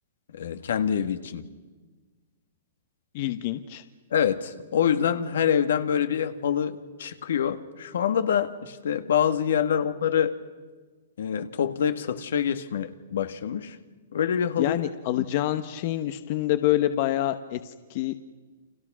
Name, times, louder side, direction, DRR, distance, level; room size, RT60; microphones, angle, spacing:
voice 1, 0.3-1.5 4.1-10.4 11.2-13.8 14.1-14.8 15.2-15.3, left 8 dB, 75° left, 9 dB, 1.9 m, -26 dB
voice 2, 3.1-3.8 14.6-18.1, left 14 dB, 45° left, 10 dB, 1.1 m, -27 dB
30.0 x 26.5 x 6.2 m, 1.3 s
hypercardioid pair, 150°, 0 cm